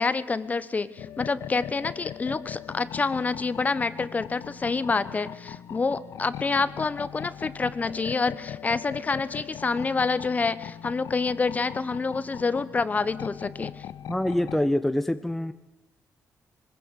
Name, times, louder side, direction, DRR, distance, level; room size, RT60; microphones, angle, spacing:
voice 1, 0.0-13.8, left 4 dB, 25° left, 15 dB, 1.0 m, -27 dB
sound 1, 1.0-14.7, left 10 dB, 85° left, 0.8 m, -40 dB
voice 2, 14.1-15.5, left 1 dB, 5° left, 10 dB, 0.8 m, -25 dB
23.0 x 21.0 x 8.3 m, 0.98 s
wide cardioid pair, 140°, 6 cm